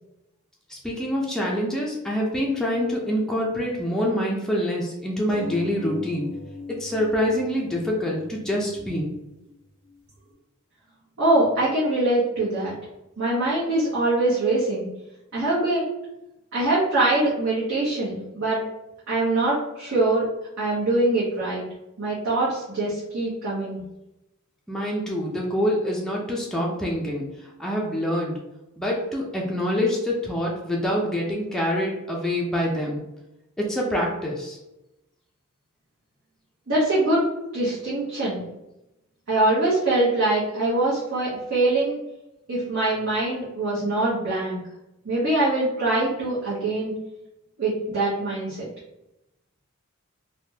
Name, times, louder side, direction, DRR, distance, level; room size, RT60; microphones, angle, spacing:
voice 1, 0.7-6.3 6.7-9.1 24.7-27.3 27.6-28.4 28.8-33.0 33.6-34.6, equal, 5° left, -3 dB, 0.4 m, -26 dB
sound 1, 5.3-10.3, left 4 dB, 85° right, 1.3 m, -40 dB
voice 2, 11.2-12.7 13.2-14.9 15.3-15.8 16.5-18.6 19.1-20.2 20.6-21.6 22.0-23.8 36.7-37.3 37.5-38.4 39.3-42.0 42.5-44.6 45.0-46.9 47.6-48.7, right 2 dB, 70° right, -9 dB, 0.9 m, -23 dB
3.3 x 2.1 x 2.7 m, 0.93 s
head